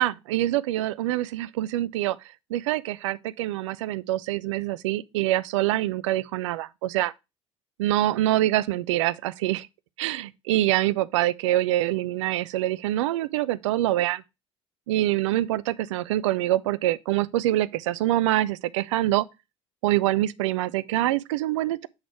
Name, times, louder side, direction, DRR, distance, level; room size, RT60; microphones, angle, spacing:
voice 1, 0.0-2.2 2.5-7.1 7.8-9.7 10.0-14.2 14.9-19.3 19.8-21.9, right 15 dB, 65° right, 0.4 m, -25 dB
7.8 x 4.0 x 4.6 m
figure-of-eight pair, 60°, 17 cm